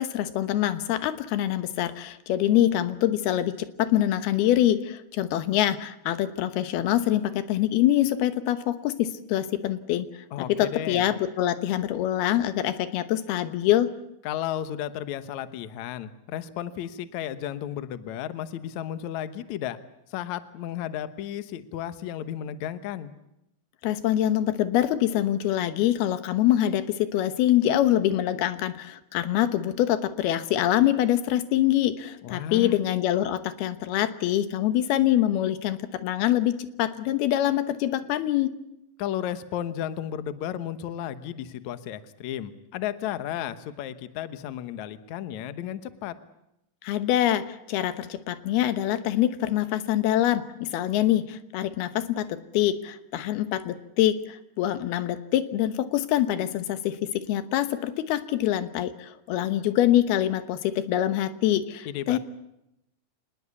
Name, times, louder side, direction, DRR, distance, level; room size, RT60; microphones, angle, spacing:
voice 1, 0.0-10.1 10.6-13.9 23.8-38.5 46.8-62.2, left 12 dB, 85° left, 11 dB, 3.1 m, -25 dB
voice 2, 10.3-11.1 14.2-19.8 20.1-23.1 32.2-32.7 39.0-46.2 61.9-62.2, left 11 dB, 65° left, 12 dB, 2.1 m, -33 dB
26.0 x 20.0 x 8.4 m, 0.85 s
omnidirectional pair, 4.4 m